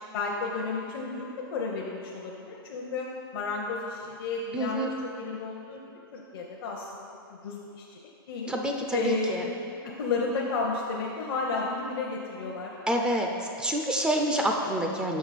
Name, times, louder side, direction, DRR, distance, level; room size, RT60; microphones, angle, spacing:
voice 1, 0.1-3.1 3.3-5.8 6.1-6.9 7.3-8.0 8.3-8.5 8.9-9.5 9.8-12.7, left 4 dB, 65° left, -2 dB, 0.7 m, -32 dB
voice 2, 4.5-4.9 8.5-9.4 12.9-15.2, equal, 5° right, 1 dB, 0.4 m, -27 dB
6.1 x 5.0 x 4.1 m, 2.5 s
hypercardioid pair, 135°, 13 cm